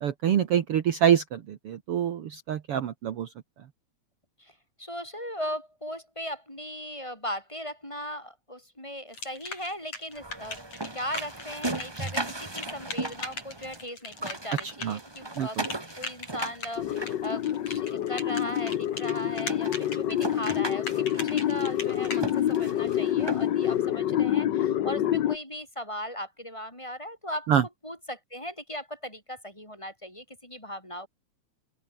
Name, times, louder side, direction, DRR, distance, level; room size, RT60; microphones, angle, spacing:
voice 1, 0.0-3.3 14.6-15.0 15.4-15.7 27.5-27.6, right 9 dB, 55° right, 2.1 m, -26 dB
voice 2, 4.4-10.6 10.9-27.5 27.8-31.1, equal, 10° left, 6.2 m, -38 dB
sound 1, 9.1-22.3, left 3 dB, 60° left, 8.9 m, -39 dB
sound 2, 10.1-13.8 14.1-17.9 18.5-18.6 19.1-19.2 19.5-23.7, right 2 dB, 10° right, 1.2 m, -37 dB
sound 3, 16.8-25.4, left 11 dB, 90° left, 0.9 m, -27 dB
open air
omnidirectional pair, 3.3 m